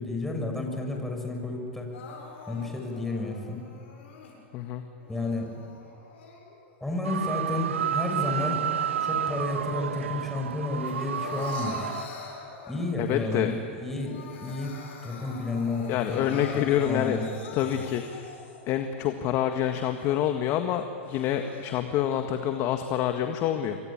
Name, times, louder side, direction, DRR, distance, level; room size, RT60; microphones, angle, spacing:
voice 1, 0.0-2.0 2.5-3.7 5.1-5.6 6.8-8.7 9.0-11.8 12.7-14.8 15.0-17.8, left 2 dB, 5° left, 1 dB, 6.6 m, -32 dB
Crying sobbing, 1.9-4.4 5.0-6.8 7.2-10.1 10.5-13.1 13.5-13.6 13.9-18.8 19.3-19.4 20.0-20.1 20.8-21.7, left 4 dB, 70° left, 7.6 m, -44 dB
sound 1, 7.0-12.1, right 9 dB, 85° right, 0.9 m, -30 dB
voice 2, 13.0-13.5 15.9-17.2 17.5-18.3 18.7-23.8, left 10 dB, 45° left, 6 dB, 1.8 m, -27 dB
27.5 x 23.0 x 8.9 m, 2.4 s
hypercardioid pair, 110°, 6 cm